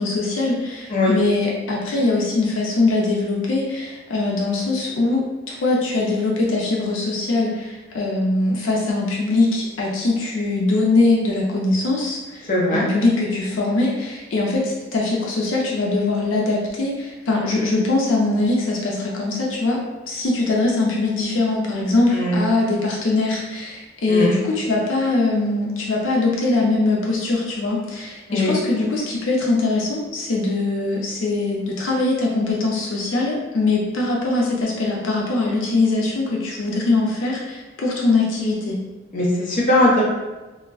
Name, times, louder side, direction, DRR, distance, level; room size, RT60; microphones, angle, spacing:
voice 1, 0.0-12.5 12.7-19.8 20.1-38.8, left 2 dB, 85° left, -2 dB, 0.5 m, -22 dB
voice 2, 12.5-12.8 22.1-22.4 24.1-24.3 28.3-28.5 39.1-40.0, left 1 dB, 45° left, -4 dB, 0.7 m, -19 dB
2.3 x 2.1 x 3.5 m, 1.2 s
head